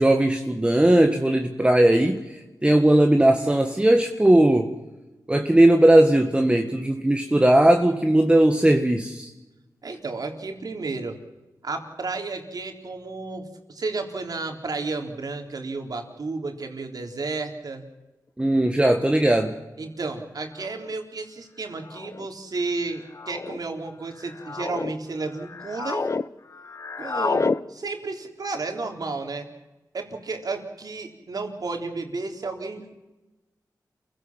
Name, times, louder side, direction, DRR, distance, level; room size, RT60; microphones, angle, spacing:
voice 1, 0.0-4.8 5.3-9.3 18.4-19.5, right 1 dB, 15° right, 4 dB, 1.6 m, -18 dB
voice 2, 9.8-11.2 11.6-17.9 19.8-26.1 27.0-29.5 29.9-32.9, right 3 dB, 60° right, 4 dB, 3.6 m, -32 dB
sound 1, 19.5-19.6 20.6-20.9 21.9-22.3 23.1-23.6 24.2-24.9 25.4-26.3 26.5-27.6, left 4 dB, 40° left, 0.7 m, -29 dB
28.0 x 16.5 x 7.4 m, 1.1 s
cardioid pair, 70°, 7 cm